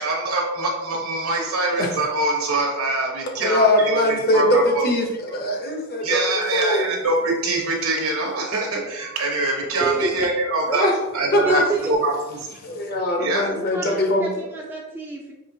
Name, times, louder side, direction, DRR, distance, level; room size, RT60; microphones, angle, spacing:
voice 1, 0.0-4.8 6.0-12.1 12.5-12.6 12.9-13.5, right 2 dB, 75° right, 0 dB, 1.0 m, -24 dB
voice 2, 3.4-6.9 10.7-10.9 11.3-11.6 12.6-14.3, left 1 dB, 45° left, 1 dB, 0.7 m, -21 dB
voice 3, 9.8-10.3 11.4-11.9 13.5-15.3, right 2 dB, 10° right, -2 dB, 0.3 m, -28 dB
4.8 x 2.7 x 2.7 m, 1.0 s
head